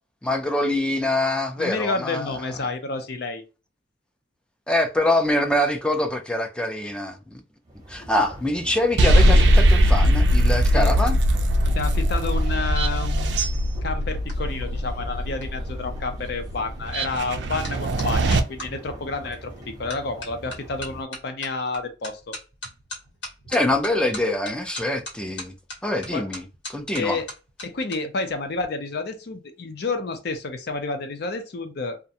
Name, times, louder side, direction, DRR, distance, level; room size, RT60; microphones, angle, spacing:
voice 1, 0.2-2.5 4.7-7.4 7.9-11.2 23.5-25.5 25.8-26.4 26.7-27.2, left 1 dB, 5° left, 0.4 m, -24 dB
voice 2, 1.6-3.4 10.7-10.9 11.6-13.4 13.8-22.3 26.1-26.3 26.9-27.3 27.6-32.0, left 3 dB, 60° left, 0.5 m, -30 dB
sound 1, 7.6-21.0, right 1 dB, 20° right, 0.7 m, -42 dB
sound 2, 9.0-18.4, equal, 65° right, 0.4 m, -20 dB
sound 3, 13.7-18.7 19.3-19.6 19.9-28.0 28.3-28.6, left 1 dB, 90° left, 1.2 m, -40 dB
2.4 x 2.1 x 2.7 m
head